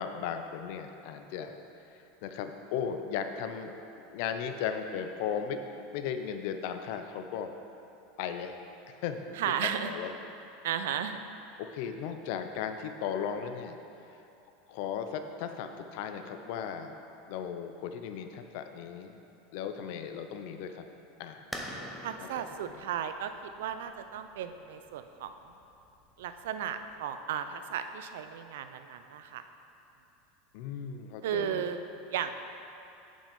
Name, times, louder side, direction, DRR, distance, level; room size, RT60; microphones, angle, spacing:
voice 1, 0.0-1.6 1.9-3.7 4.1-7.5 8.2-8.6 8.9-10.1 11.6-13.8 14.7-16.9 17.3-19.2 19.5-20.9 21.2-21.4 22.4-22.8 30.5-31.7, left 7 dB, 50° left, 7 dB, 0.5 m, -36 dB
voice 2, 9.3-9.9 10.6-11.2 22.0-25.3 26.2-29.4 31.2-31.8 32.1-32.4, right 9 dB, 80° right, 9 dB, 0.5 m, -34 dB
sound 1, 21.5-27.0, equal, ahead, 0.6 m, -46 dB
8.6 x 5.3 x 5.3 m, 2.8 s
supercardioid pair, 170°, 0 cm